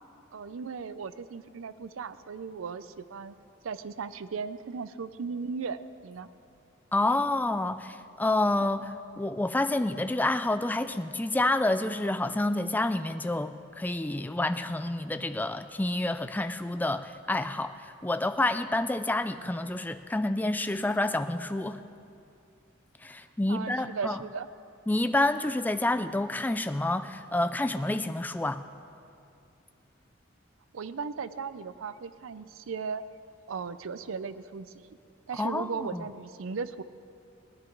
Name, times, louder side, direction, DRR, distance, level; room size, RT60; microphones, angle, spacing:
voice 1, 0.3-3.4 3.6-6.3 23.5-24.5 30.7-33.0 33.5-35.0 35.3-36.8, right 5 dB, 80° right, 14 dB, 0.5 m, -37 dB
voice 2, 6.9-21.8 23.0-24.2 24.9-28.6 35.3-36.0, left 2 dB, 10° left, 10 dB, 0.3 m, -28 dB
18.5 x 10.0 x 4.6 m, 2.6 s
head